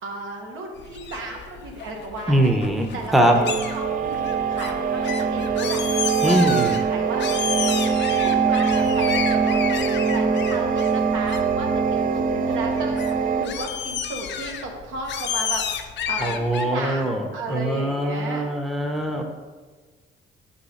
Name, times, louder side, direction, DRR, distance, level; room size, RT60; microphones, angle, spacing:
voice 1, 0.0-2.5 2.9-3.4 3.7-5.8 6.3-7.3 8.2-9.6 10.1-15.6 16.1-18.5, right 2 dB, 80° right, 0 dB, 1.2 m, -34 dB
sound 1, 0.8-16.7, left 8 dB, 60° left, 0.6 m, -32 dB
voice 2, 2.3-2.9 3.1-3.4 6.2-6.8 16.2-19.2, right 1 dB, ahead, 2 dB, 0.7 m, -22 dB
sound 2, 3.2-13.5, right 6 dB, 45° right, 0.4 m, -23 dB
5.1 x 4.1 x 5.0 m, 1.4 s
cardioid pair, 90°, 20 cm